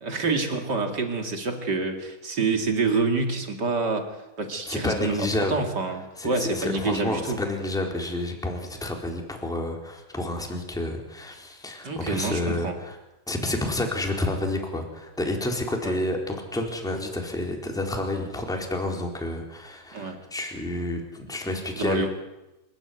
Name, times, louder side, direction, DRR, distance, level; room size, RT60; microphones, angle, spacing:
voice 1, 0.0-7.4 11.8-12.8 15.8-16.0 19.9-20.2 21.7-22.1, right 4 dB, 40° right, 5 dB, 1.5 m, -27 dB
voice 2, 4.6-5.7 6.2-12.9 13.3-22.1, left 1 dB, ahead, 1 dB, 3.3 m, -29 dB
28.0 x 15.5 x 9.5 m, 0.99 s
omnidirectional pair, 5.5 m